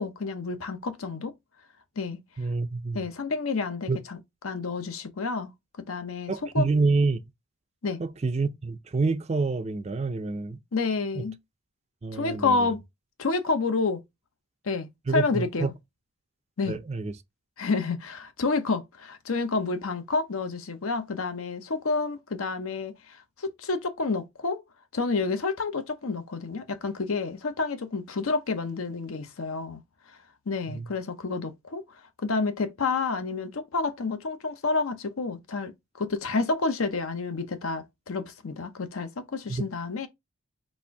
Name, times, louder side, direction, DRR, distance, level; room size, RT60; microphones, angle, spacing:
voice 1, 0.0-1.3 2.0-2.2 2.9-5.5 5.9-6.7 7.8-8.0 10.7-11.4 12.1-12.8 13.2-14.0 14.6-15.7 16.6-16.8 17.6-24.6 24.9-29.8 30.5-31.8 32.2-35.7 36.0-40.1, left 4 dB, 70° left, 0.7 m, -29 dB
voice 2, 2.4-3.0 3.9-4.0 6.3-7.2 8.0-10.6 12.0-12.6 15.1-15.7 16.7-17.1 30.7-30.8 39.5-39.6, right 3 dB, 30° right, 0.4 m, -27 dB
4.2 x 2.5 x 4.6 m
head